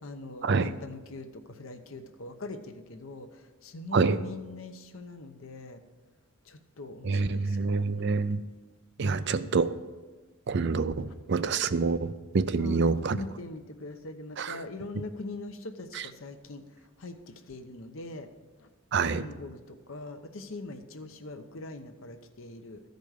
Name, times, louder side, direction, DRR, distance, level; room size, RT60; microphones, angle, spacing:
voice 1, 0.0-5.8 6.4-8.1 9.0-9.5 12.6-16.6 17.0-18.3 18.6-18.7 19.0-22.8, left 2 dB, 80° left, 7 dB, 0.9 m, -42 dB
voice 2, 7.0-8.4 9.0-9.8 10.5-13.2 14.4-14.6 18.9-19.3, right 4 dB, 55° right, 13 dB, 0.5 m, -26 dB
13.5 x 5.3 x 6.4 m, 1.3 s
head